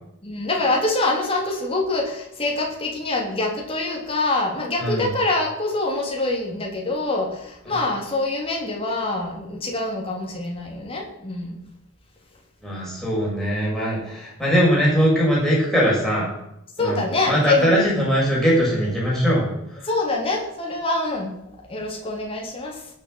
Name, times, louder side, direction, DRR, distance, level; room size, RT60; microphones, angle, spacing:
voice 1, 0.2-11.6 16.8-18.0 19.8-21.3 21.7-22.8, left 2 dB, 25° left, 0 dB, 3.2 m, -25 dB
voice 2, 12.6-16.3 16.8-19.5 19.8-19.9, equal, ahead, -6 dB, 6.5 m, -21 dB
20.0 x 7.2 x 6.5 m, 0.82 s
head